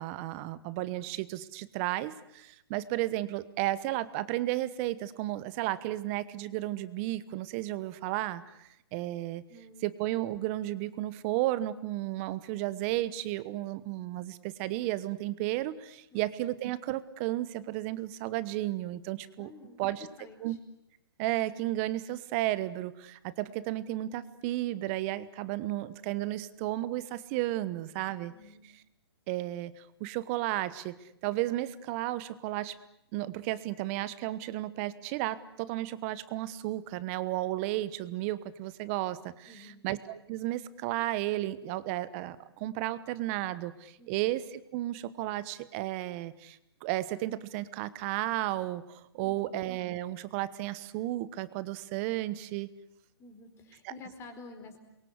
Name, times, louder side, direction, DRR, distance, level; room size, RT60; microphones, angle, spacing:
voice 1, 0.0-9.4 9.8-19.5 19.8-20.1 20.4-20.6 21.2-28.3 29.3-32.8 33.1-52.7, right 16 dB, 30° right, 16 dB, 1.1 m, -33 dB
voice 2, 9.5-9.9 16.1-16.3 19.4-20.6 28.1-28.6 39.5-39.8 44.0-44.3 49.2-49.6 53.2-54.8, left 3 dB, 20° left, 7 dB, 4.5 m, -50 dB
28.5 x 23.0 x 8.1 m, 0.82 s
hypercardioid pair, 140°, 14 cm